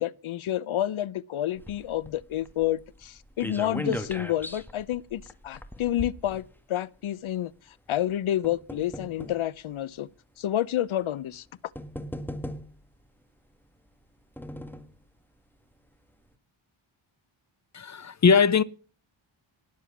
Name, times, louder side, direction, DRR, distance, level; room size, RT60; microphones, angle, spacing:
voice 1, 0.0-7.5 7.9-10.1 10.4-11.4, left 12 dB, 75° left, 0.7 m, -29 dB
sound 1, 1.6-7.0 7.9-9.4 10.3-10.4 11.3-11.4 11.8-13.0 13.9-15.0 15.4-15.5 15.8-15.9, equal, 5° left, 1.5 m, -39 dB
voice 2, 17.7-18.6, left 6 dB, 35° left, 0.7 m, -20 dB
19.0 x 7.6 x 7.2 m
wide cardioid pair, 110°, 49 cm